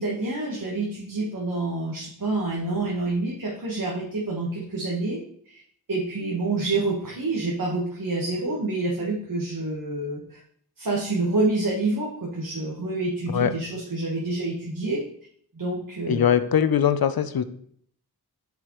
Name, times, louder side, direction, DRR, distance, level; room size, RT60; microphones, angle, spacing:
voice 1, 0.0-5.2 5.5-5.6 5.9-10.4 10.8-15.0 15.5-16.4, right 2 dB, 60° right, -3 dB, 1.3 m, -27 dB
voice 2, 16.1-17.4, left 8 dB, 70° left, 12 dB, 0.6 m, -21 dB
8.1 x 4.8 x 3.1 m, 0.63 s
wide cardioid pair, 90°, 38 cm